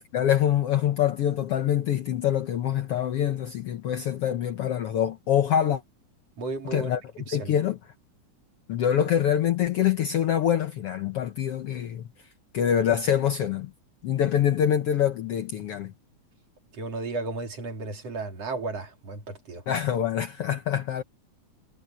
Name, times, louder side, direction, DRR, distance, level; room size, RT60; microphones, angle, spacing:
voice 1, 0.1-5.8 6.7-7.0 7.3-7.8 8.7-12.1 12.5-13.7 14.0-15.9 19.7-21.0, left 10 dB, 65° left, 1.6 m, -25 dB
voice 2, 6.4-6.9 7.3-7.6 16.7-19.6, right 3 dB, 55° right, 4.2 m, -34 dB
omnidirectional pair, 3.5 m